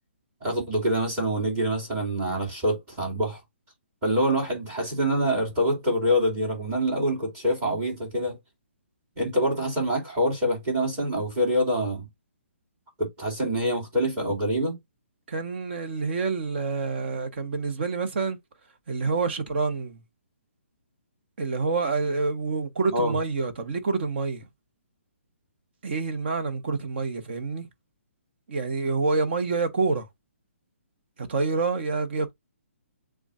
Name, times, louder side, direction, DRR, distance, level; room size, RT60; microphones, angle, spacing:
voice 1, 0.4-3.4 4.0-8.4 9.2-12.1 13.0-14.8 22.9-23.2, equal, 20° right, 2.5 m, -25 dB
voice 2, 15.3-18.4 18.9-20.0 21.4-24.4 25.8-27.7 28.5-30.1 31.2-32.3, right 4 dB, 50° right, 1.2 m, -27 dB
7.0 x 2.4 x 2.5 m
hypercardioid pair, 160°, 7 cm